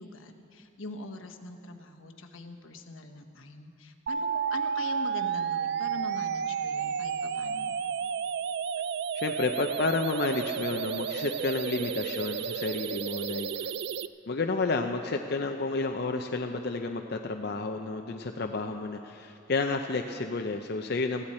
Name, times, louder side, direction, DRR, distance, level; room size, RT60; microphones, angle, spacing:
voice 1, 0.0-7.8, left 2 dB, 85° left, 5 dB, 1.2 m, -43 dB
sound 1, 4.1-14.1, right 7 dB, 55° right, 0.3 m, -32 dB
voice 2, 9.1-13.7 14.3-21.2, left 3 dB, 55° left, 4 dB, 0.6 m, -31 dB
18.5 x 15.5 x 4.3 m, 2.6 s
head